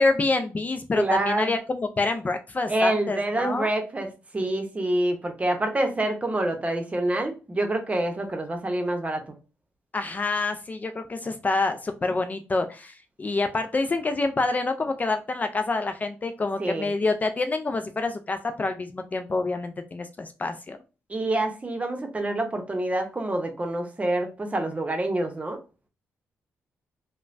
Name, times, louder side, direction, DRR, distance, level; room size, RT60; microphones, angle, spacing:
voice 1, 0.0-3.7 9.9-20.8, left 3 dB, 30° left, 0.4 m, -27 dB
voice 2, 0.9-1.6 2.7-9.2 16.6-16.9 21.1-25.6, right 1 dB, 25° right, 0.8 m, -27 dB
3.0 x 2.1 x 2.5 m
supercardioid pair, 60°, 5 cm